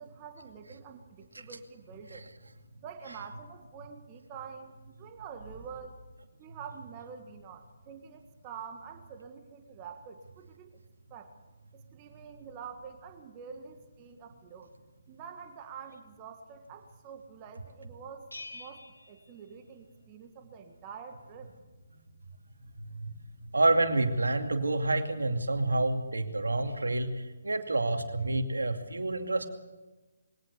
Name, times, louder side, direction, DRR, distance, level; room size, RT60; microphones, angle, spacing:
voice 1, 0.0-2.3 2.8-6.0 6.4-10.8 11.1-11.3 11.7-14.7 15.1-21.6, right 6 dB, 25° right, 5 dB, 1.7 m, -47 dB
Bell, 18.3-20.1, left 2 dB, 85° left, 2.5 m, -48 dB
voice 2, 23.5-29.5, right 2 dB, 75° right, 5 dB, 2.4 m, -28 dB
22.0 x 17.5 x 7.0 m, 1.2 s
figure-of-eight pair, 140°, 0 cm